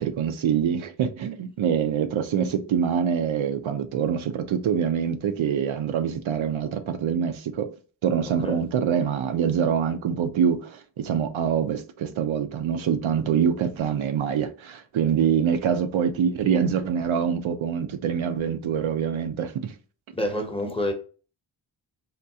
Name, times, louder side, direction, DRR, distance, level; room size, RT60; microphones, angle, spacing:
voice 1, 0.0-7.7 8.0-19.7, right 7 dB, 90° right, 0.5 m, -25 dB
voice 2, 8.2-8.6 20.1-20.9, left 1 dB, 10° left, 0.6 m, -28 dB
3.6 x 2.3 x 2.7 m
wide cardioid pair, 85°, 47 cm